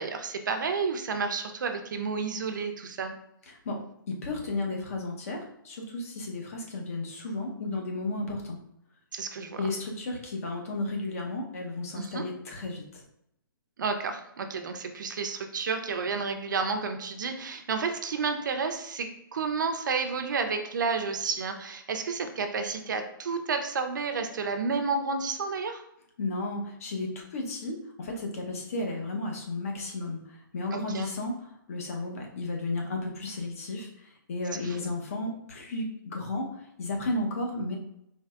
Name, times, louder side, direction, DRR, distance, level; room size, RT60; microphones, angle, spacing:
voice 1, 0.0-3.1 9.1-9.6 11.9-12.3 13.8-25.8 30.7-31.1 34.5-34.9, right 4 dB, 55° right, 6 dB, 0.5 m, -31 dB
voice 2, 3.5-8.6 9.6-13.0 26.2-31.3 31.7-37.8, left 2 dB, 40° left, 1 dB, 0.8 m, -33 dB
4.5 x 3.2 x 2.4 m, 0.77 s
hypercardioid pair, 170°, 12 cm